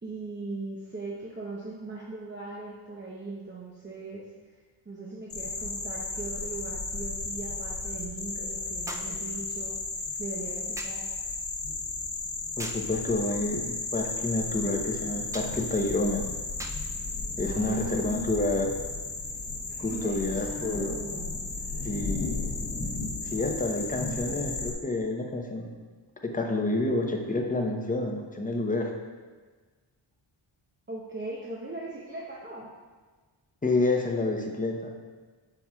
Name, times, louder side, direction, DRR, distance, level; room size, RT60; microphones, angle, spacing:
voice 1, 0.0-9.7 10.2-11.1 17.4-18.6 19.9-21.3 30.9-32.7, right 2 dB, 25° right, -4 dB, 0.8 m, -39 dB
sound 1, 5.1-5.2 8.9-9.2 10.8-11.1 12.6-12.9 15.3-15.6 16.6-16.9 17.9-18.1, right 1 dB, 5° right, 0.3 m, -41 dB
sound 2, 5.3-24.7, left 3 dB, 50° left, 1.1 m, -34 dB
voice 2, 12.6-16.2 17.4-18.7 19.8-20.9 21.8-22.3 23.2-25.7 26.2-28.9 33.6-34.9, left 2 dB, 15° left, 2 dB, 0.8 m, -29 dB
7.0 x 5.9 x 2.3 m, 1.4 s
cardioid pair, 65°, 49 cm